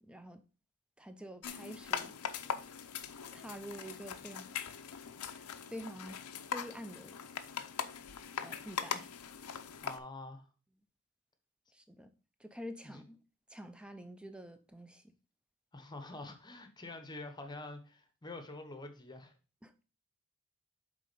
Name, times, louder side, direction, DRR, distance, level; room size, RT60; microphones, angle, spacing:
voice 1, 0.0-0.4 1.0-2.2 3.3-4.5 4.9-5.0 5.3-6.3 6.5-7.2 8.4-9.1 11.7-12.1 12.4-13.2 13.5-15.1 19.6-19.8, equal, 5° right, 0.5 m, -48 dB
sound 1, 1.4-10.0, left 7 dB, 85° left, 0.6 m, -41 dB
voice 2, 9.8-10.5 12.9-13.0 15.7-19.3, left 2 dB, 20° left, 0.9 m, -46 dB
8.1 x 3.7 x 5.2 m
head